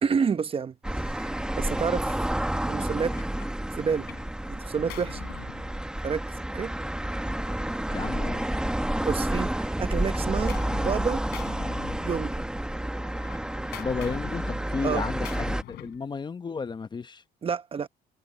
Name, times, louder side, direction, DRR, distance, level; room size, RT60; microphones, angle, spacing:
voice 1, 0.0-1.3 1.6-2.2 2.7-3.2 3.8-4.1 4.5-5.2 6.0-6.3 6.5-6.7 9.0-11.2 12.0-12.3 14.8-15.0 17.4-17.9, right 6 dB, 35° right, 1.1 m, -29 dB
sound 1, 0.8-15.6, right 1 dB, 5° right, 1.3 m, -30 dB
Gunshot gunfire, 2.1-2.3 2.8-4.3 4.6-6.3 7.3-9.1 9.5-11.0 11.3-12.6 12.9-16.1, left 15 dB, 80° left, 3.7 m, -45 dB
voice 2, 7.9-8.5 13.8-17.2, left 5 dB, 25° left, 0.9 m, -33 dB
cardioid pair, 110°, 17 cm